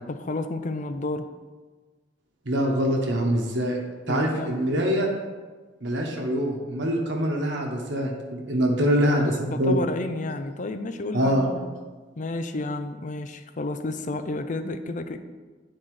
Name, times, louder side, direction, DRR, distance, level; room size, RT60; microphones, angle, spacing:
voice 1, 0.1-1.3 4.1-4.6 8.8-11.7 12.2-15.2, left 2 dB, 40° left, 9 dB, 0.5 m, -31 dB
voice 2, 2.4-3.8 4.1-5.1 5.8-9.8 11.1-11.5, equal, 70° right, 0 dB, 1.1 m, -24 dB
9.5 x 4.4 x 4.8 m, 1.4 s
head